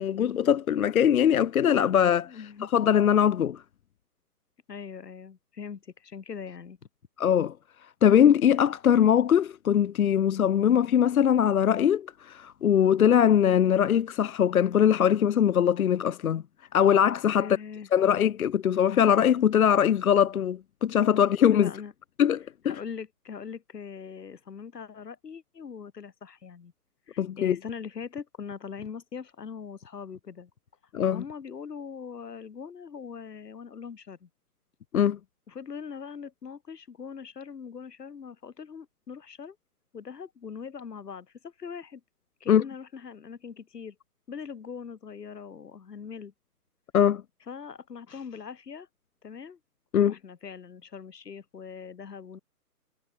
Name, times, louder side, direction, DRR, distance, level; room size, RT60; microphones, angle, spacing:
voice 1, 0.0-2.3 2.7-3.6 7.2-7.5 8.0-16.4 16.7-17.5 17.9-21.7 22.2-22.8 27.2-27.6 30.9-31.2 34.9-35.2 42.5-42.6 46.9-47.2 49.9-50.1, left 9 dB, 60° left, 0.7 m, -22 dB
voice 2, 2.3-2.7 4.7-6.8 17.4-17.9 21.1-21.3 21.5-21.9 22.6-26.7 27.1-30.5 31.1-34.3 35.5-39.6 39.9-42.0 42.4-44.0 44.3-46.3 47.5-48.9 49.2-49.6 50.0-52.4, left 6 dB, 85° left, 1.8 m, -41 dB
hypercardioid pair, 160°, 47 cm